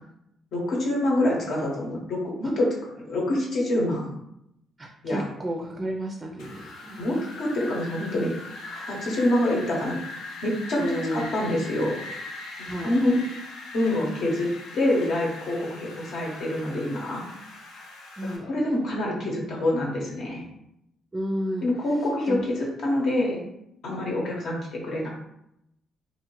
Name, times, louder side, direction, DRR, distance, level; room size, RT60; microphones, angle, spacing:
voice 1, 0.5-4.1 5.0-5.2 7.0-8.3 8.6-9.9 10.4-12.0 12.6-13.2 13.7-14.5 14.7-17.3 18.2-20.4 21.6-23.4 23.8-25.1, left 1 dB, 70° left, -3 dB, 1.0 m, -26 dB
voice 2, 4.8-7.0 10.8-11.3 12.6-12.9 18.2-18.5 21.1-21.7 22.0-22.5, equal, 25° right, 2 dB, 0.4 m, -31 dB
Wind, 6.4-18.4, left 2 dB, 90° left, 0.5 m, -41 dB
2.7 x 2.4 x 3.0 m, 0.79 s
cardioid pair, 90°, 0 cm